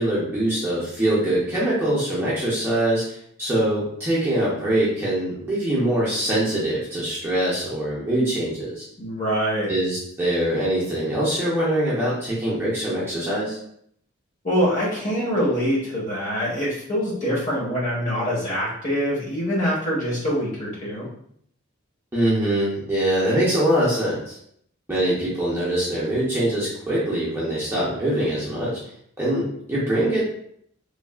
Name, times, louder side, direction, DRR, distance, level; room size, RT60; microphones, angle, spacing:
voice 1, 0.0-8.8 9.7-13.6 22.1-24.4 24.9-28.8 29.2-30.2, right 1 dB, 10° right, -8 dB, 0.7 m, -23 dB
voice 2, 9.0-9.7 14.4-21.1, equal, 35° left, -5 dB, 0.9 m, -24 dB
3.2 x 2.3 x 2.3 m, 0.67 s
head